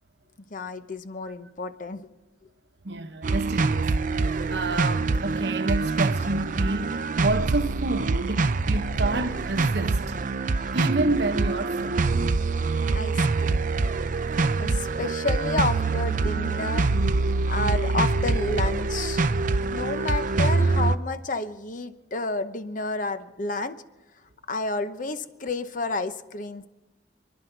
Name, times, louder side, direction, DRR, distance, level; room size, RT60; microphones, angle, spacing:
voice 1, 0.5-2.1 12.9-13.7 14.6-16.9 17.5-19.2 19.7-23.7 24.5-26.6, left 3 dB, 50° left, 0.9 m, -30 dB
voice 2, 2.8-4.0 4.2-10.2 10.7-12.1, right 2 dB, 70° right, 0.9 m, -29 dB
sound 1, 3.2-21.0, right 3 dB, 50° right, 0.5 m, -25 dB
29.0 x 10.5 x 4.6 m
head